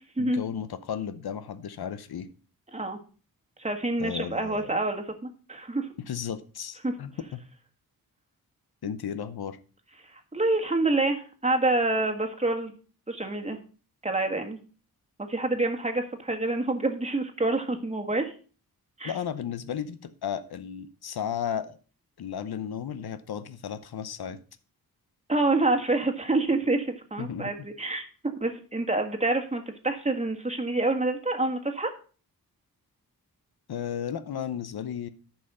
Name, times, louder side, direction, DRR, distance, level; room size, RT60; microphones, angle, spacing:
voice 1, 0.2-2.3 4.0-4.7 6.0-7.4 8.8-9.6 19.0-21.8 22.2-24.4 27.2-27.5 33.7-35.1, left 8 dB, 80° left, 12 dB, 0.8 m, -34 dB
voice 2, 3.6-5.9 6.8-6.9 10.1-12.7 13.1-13.6 14.0-14.6 15.2-18.3 19.0-19.1 25.3-31.9, right 2 dB, 20° right, 4 dB, 1.6 m, -27 dB
10.5 x 5.6 x 5.5 m, 0.38 s
wide cardioid pair, 110°, 37 cm